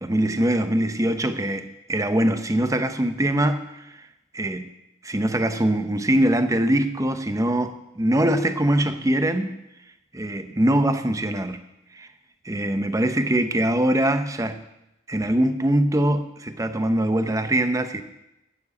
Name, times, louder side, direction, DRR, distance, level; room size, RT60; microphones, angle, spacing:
voice 1, 0.0-3.6 4.3-4.7 5.0-9.5 10.1-11.6 11.9-12.1 12.4-14.6 15.1-18.0, right 1 dB, 15° right, 8 dB, 0.7 m, -22 dB
9.6 x 7.2 x 8.2 m, 0.89 s
head